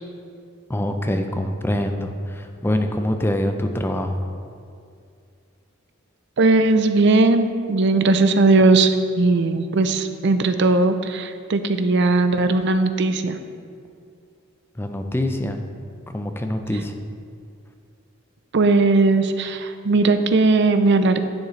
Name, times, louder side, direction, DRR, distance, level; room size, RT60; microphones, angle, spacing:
voice 1, 0.7-4.2 14.8-15.6 16.1-17.0, left 1 dB, 10° left, 5 dB, 0.5 m, -24 dB
voice 2, 6.4-13.4 18.5-21.2, right 3 dB, 55° right, 9 dB, 0.5 m, -18 dB
10.5 x 7.5 x 3.2 m, 2.4 s
head